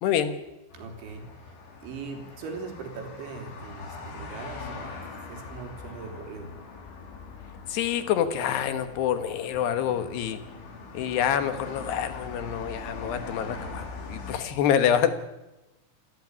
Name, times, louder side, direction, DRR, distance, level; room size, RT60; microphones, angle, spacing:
voice 1, 0.0-0.4 7.7-10.4 10.9-15.1, left 9 dB, 70° left, 10 dB, 3.4 m, -26 dB
sound 1, 0.7-14.4, left 4 dB, 85° left, 6.3 m, -42 dB
voice 2, 0.7-1.6 1.8-5.0 5.3-6.6, right 4 dB, 80° right, 4 dB, 5.6 m, -40 dB
27.5 x 14.0 x 9.6 m, 0.99 s
omnidirectional pair, 5.2 m